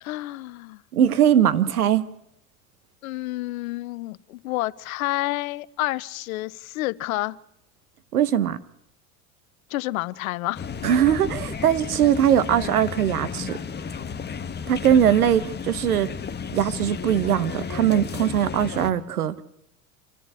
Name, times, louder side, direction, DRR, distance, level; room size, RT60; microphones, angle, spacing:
voice 1, 0.0-0.8 3.0-7.4 9.7-10.7, left 18 dB, 70° left, 0.8 m, -29 dB
voice 2, 0.9-2.1 8.1-8.6 10.8-13.6 14.7-16.1 16.5-19.4, right 9 dB, 85° right, 1.2 m, -21 dB
sound 1, 10.5-18.9, left 6 dB, 25° left, 1.6 m, -33 dB
27.0 x 11.0 x 9.8 m
hypercardioid pair, 85°, 43 cm